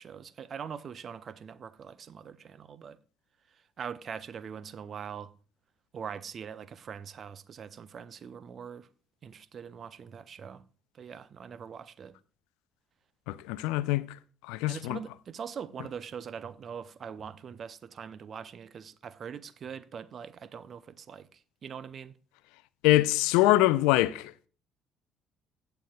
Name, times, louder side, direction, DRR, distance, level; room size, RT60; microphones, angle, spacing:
voice 1, 0.0-3.0 3.8-5.3 5.9-8.9 9.2-10.6 11.0-12.1 14.7-21.3 21.6-22.1, right 7 dB, 45° right, 0.5 m, -42 dB
voice 2, 13.3-14.0 14.4-15.0 22.8-24.3, left 17 dB, 70° left, 0.4 m, -24 dB
16.5 x 6.9 x 2.3 m
figure-of-eight pair, 50°, 0 cm